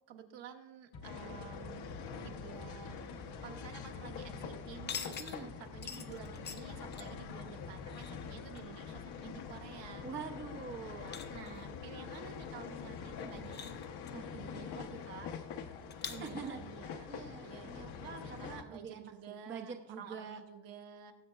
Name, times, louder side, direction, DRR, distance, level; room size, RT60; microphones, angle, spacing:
voice 1, 0.1-10.1 11.3-13.8 16.1-17.1 17.4-21.1, right 8 dB, 70° right, 4 dB, 1.2 m, -51 dB
sound 1, 0.9-8.6, left 3 dB, 75° left, 1.8 m, -52 dB
sound 2, 1.0-18.6, left 6 dB, 60° left, 0.9 m, -45 dB
sound 3, 3.0-17.4, left 7 dB, 25° left, 0.4 m, -51 dB
voice 2, 5.2-5.5 10.0-11.2 13.2-13.4 14.1-15.3 16.2-16.6 17.1-20.4, right 5 dB, 25° right, 3 dB, 0.6 m, -46 dB
18.5 x 7.8 x 2.4 m, 0.97 s
cardioid pair, 165°, 46 cm